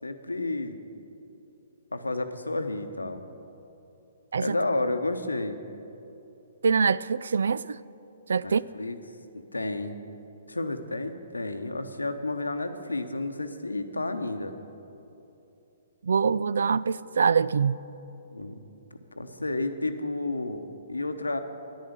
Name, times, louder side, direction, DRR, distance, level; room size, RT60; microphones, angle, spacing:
voice 1, 0.0-0.8 1.9-3.2 4.4-5.6 8.4-9.0 9.3-10.0 10.5-14.5 18.3-18.6 19.2-21.4, left 2 dB, 90° left, 1.0 m, -31 dB
voice 2, 6.6-7.8 8.3-8.6 16.0-17.8, right 5 dB, 70° right, 0.3 m, -24 dB
10.5 x 10.5 x 8.1 m
figure-of-eight pair, 125°, 0 cm